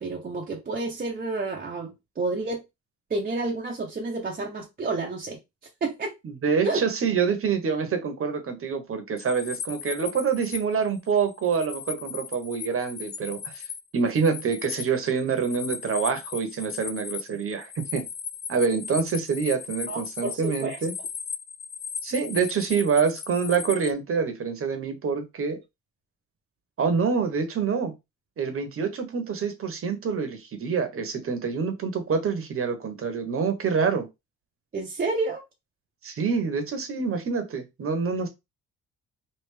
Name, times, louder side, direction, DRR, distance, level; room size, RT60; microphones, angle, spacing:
voice 1, 0.0-2.6 3.1-5.4 5.8-6.1 6.6-6.8 19.9-20.8 34.7-35.4, right 3 dB, 30° right, 0.7 m, -30 dB
voice 2, 6.2-13.6 13.9-18.0 18.5-20.9 22.0-25.6 26.8-27.9 28.4-34.1 36.0-38.3, right 5 dB, 45° right, 1.0 m, -26 dB
sound 1, 9.2-10.6 11.0-13.8 14.1-23.9, left 6 dB, 35° left, 0.4 m, -37 dB
3.3 x 2.5 x 3.3 m
cardioid pair, 90°, 30 cm